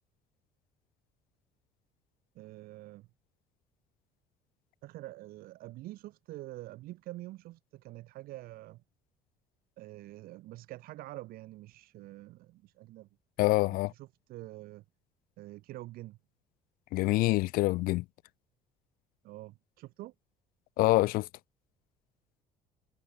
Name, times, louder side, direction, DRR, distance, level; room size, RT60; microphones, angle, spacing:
voice 1, 2.3-3.1 4.8-8.8 9.8-13.1 13.9-14.8 15.4-16.2 19.2-20.1, right 17 dB, 70° right, 2.8 m, -46 dB
voice 2, 13.4-13.9 16.9-18.0 20.8-21.3, left 19 dB, 65° left, 0.4 m, -26 dB
hypercardioid pair, 70°, 16 cm